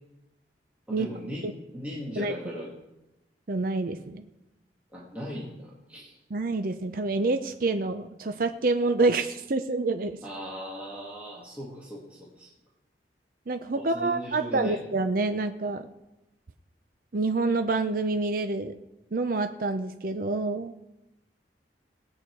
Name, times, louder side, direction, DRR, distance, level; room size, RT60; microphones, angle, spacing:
voice 1, 0.9-2.7 4.9-6.1 10.2-12.5 13.7-14.8, equal, 10° right, -6 dB, 2.1 m, -38 dB
voice 2, 3.5-4.3 6.3-10.2 13.5-15.9 17.1-18.8 19.1-20.7, right 3 dB, 50° right, 7 dB, 0.6 m, -27 dB
19.0 x 8.7 x 4.7 m, 0.95 s
head